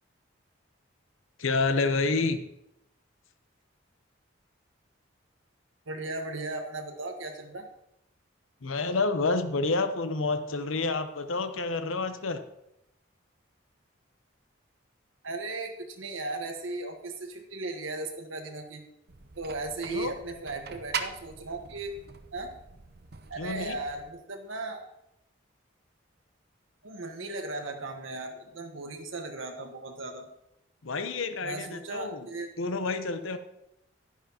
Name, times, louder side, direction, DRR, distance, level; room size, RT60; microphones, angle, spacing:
voice 1, 1.4-2.4 8.6-12.4 19.9-20.1 23.4-23.8 30.8-32.3 32.6-33.4, left 3 dB, 85° left, 9 dB, 0.8 m, -29 dB
voice 2, 5.9-7.7 15.2-18.8 19.4-21.9 22.3-22.5 23.3-24.8 26.8-30.3 31.4-32.5, right 2 dB, 80° right, 4 dB, 1.4 m, -36 dB
sound 1, 19.1-24.1, right 6 dB, 50° right, 0.7 m, -41 dB
11.5 x 10.0 x 2.9 m, 0.84 s
head